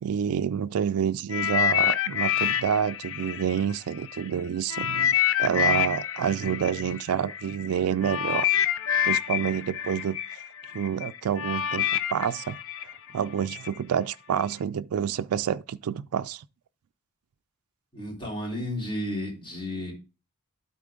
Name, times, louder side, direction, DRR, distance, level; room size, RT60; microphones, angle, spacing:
voice 1, 0.0-8.5 9.0-10.2 10.7-16.4, right 8 dB, 80° right, 0.4 m, -28 dB
sound 1, 1.3-4.2 4.7-13.7 14.4-14.5, left 10 dB, 60° left, 0.5 m, -27 dB
voice 2, 17.9-19.9, left 1 dB, 25° left, 3.5 m, -32 dB
12.0 x 4.2 x 3.7 m
head